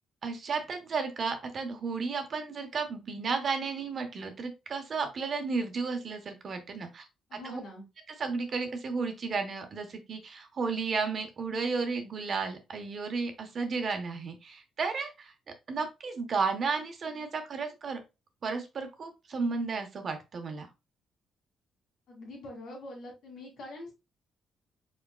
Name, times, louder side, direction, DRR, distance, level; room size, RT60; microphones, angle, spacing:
voice 1, 0.2-7.0 7.3-7.6 8.2-15.3 15.7-18.0 18.4-20.7, right 4 dB, 50° right, 6 dB, 1.1 m, -33 dB
voice 2, 7.3-7.9 22.1-23.9, left 1 dB, 70° left, -1 dB, 2.6 m, -44 dB
4.9 x 4.3 x 2.3 m, 0.25 s
cardioid pair, 90°, 0 cm